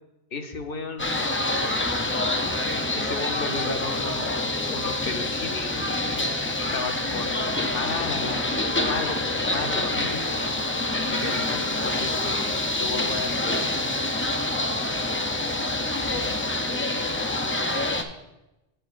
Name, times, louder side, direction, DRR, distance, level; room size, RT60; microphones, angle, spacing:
voice 1, 0.3-1.1 3.0-4.4 4.7-5.8 6.5-10.4 11.0-13.8, left 4 dB, 65° left, 6 dB, 0.9 m, -34 dB
sound 1, 1.0-18.0, left 2 dB, 20° left, 0.4 m, -26 dB
11.0 x 7.9 x 2.5 m, 0.95 s
omnidirectional pair, 1.0 m